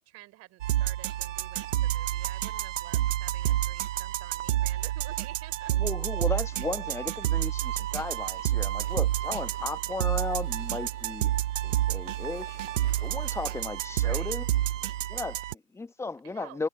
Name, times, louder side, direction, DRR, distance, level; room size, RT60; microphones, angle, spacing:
voice 1, 0.0-5.7 13.9-14.4 16.2-16.6, right 18 dB, 35° right, 5.4 m, -50 dB
sound 1, 0.6-15.5, right 13 dB, 60° right, 0.8 m, -29 dB
voice 2, 5.7-11.3 11.6-12.6 13.0-14.4 15.1-16.7, left 3 dB, 5° left, 1.5 m, -35 dB
sound 2, 6.4-15.1, left 4 dB, 85° left, 2.4 m, -57 dB
figure-of-eight pair, 105°, 44 cm